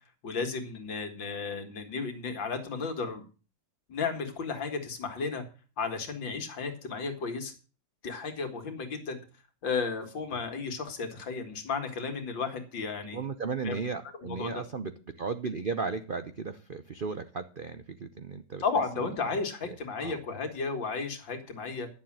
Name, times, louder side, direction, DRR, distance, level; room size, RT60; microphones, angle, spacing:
voice 1, 0.2-3.2 3.9-5.4 5.8-7.5 8.0-9.2 9.6-13.2 13.6-13.8 14.2-14.5 18.6-21.9, left 4 dB, 70° left, 6 dB, 2.6 m, -33 dB
voice 2, 13.1-18.6 19.3-19.4 19.7-19.8 20.0-20.2, right 4 dB, 80° right, 10 dB, 0.4 m, -35 dB
11.5 x 7.5 x 7.4 m, 0.36 s
omnidirectional pair, 2.1 m